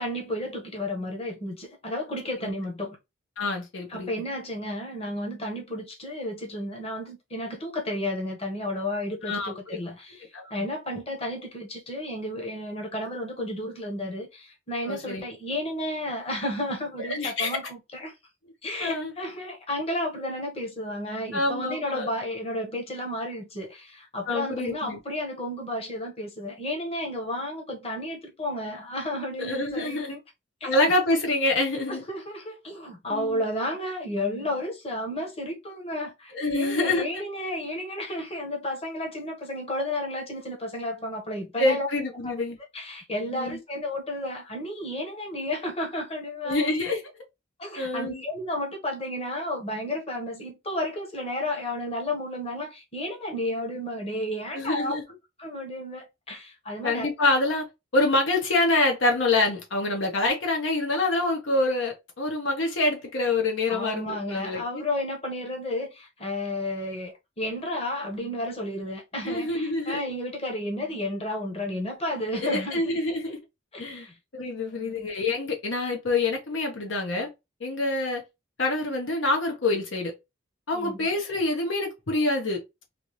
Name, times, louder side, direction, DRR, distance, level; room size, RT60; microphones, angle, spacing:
voice 1, 0.0-3.0 3.9-18.1 18.6-30.2 30.6-30.7 31.9-41.9 42.2-42.3 42.7-46.7 47.6-54.9 55.4-57.1 63.7-72.8 73.7-74.2 74.7-75.1 80.7-81.1, left 1 dB, 30° left, 1.2 m, -32 dB
voice 2, 3.4-4.1 9.2-9.8 10.3-10.5 14.9-15.3 17.0-17.6 18.8-19.1 21.3-22.1 24.3-25.0 29.4-30.2 30.6-32.0 33.1-33.4 36.3-37.2 41.6-42.6 43.3-43.6 46.4-47.0 47.8-48.2 54.5-55.0 56.8-57.7 57.9-64.8 69.2-70.0 72.4-73.4 73.8-74.1 74.3-77.3 77.6-78.2 78.6-80.1 80.7-82.6, left 2 dB, 70° left, 1.0 m, -26 dB
3.5 x 2.7 x 3.0 m
head